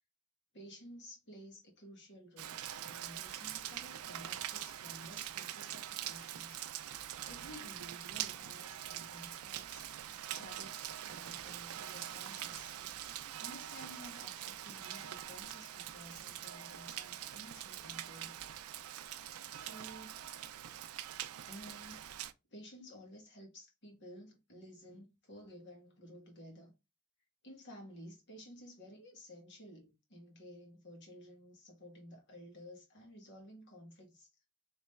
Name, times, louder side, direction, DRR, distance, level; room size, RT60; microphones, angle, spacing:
voice 1, 0.5-6.7 7.2-9.9 10.3-18.3 19.6-20.5 20.9-21.0 21.4-22.1 22.5-26.7 27.4-34.3, equal, 55° left, 1.5 m, -54 dB
Rain, 2.4-22.3, right 11 dB, 75° right, 0.4 m, -44 dB
3.5 x 3.1 x 3.1 m
head